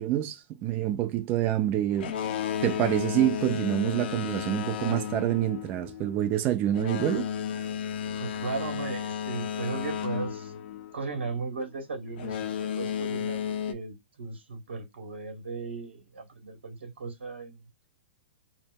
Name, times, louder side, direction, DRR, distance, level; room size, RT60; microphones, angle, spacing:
voice 1, 0.0-2.1 2.6-7.3, right 13 dB, 35° right, 0.4 m, -27 dB
Boat Water vehicle, 1.9-11.4 12.1-13.7, left 8 dB, 60° left, 0.4 m, -33 dB
voice 2, 8.2-10.5 10.9-17.6, right 4 dB, 80° right, 0.8 m, -37 dB
2.0 x 2.0 x 3.5 m
hypercardioid pair, 120°, 6 cm